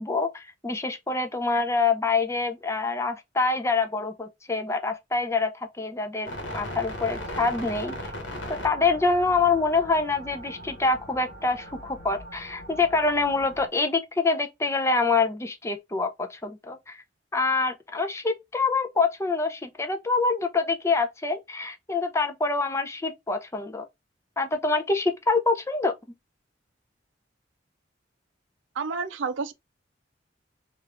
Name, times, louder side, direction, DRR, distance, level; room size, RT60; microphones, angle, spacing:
voice 1, 0.0-8.0 8.6-17.0 17.3-23.8 24.4-25.9, left 3 dB, 15° left, 0.4 m, -26 dB
sound 1, 6.3-13.7, equal, 85° left, 1.1 m, -39 dB
voice 2, 28.8-29.5, right 4 dB, 90° right, 0.5 m, -29 dB
3.3 x 2.4 x 3.4 m
head